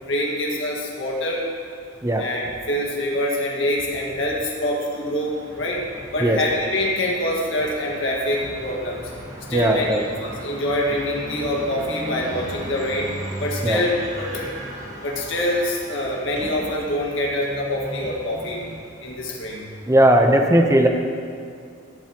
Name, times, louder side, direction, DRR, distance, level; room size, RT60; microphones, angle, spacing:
voice 1, 0.0-1.4 2.2-5.8 6.1-9.0 9.5-13.1 13.4-14.4 15.0-18.6 19.0-19.6, left 1 dB, 70° left, -3 dB, 1.8 m, -25 dB
sound 1, 5.0-18.8, right 1 dB, 35° right, 2.1 m, -37 dB
voice 2, 9.5-10.0 13.6-13.8 19.9-20.9, right 1 dB, 15° right, 3 dB, 0.8 m, -17 dB
15.0 x 11.0 x 3.0 m, 2.3 s
head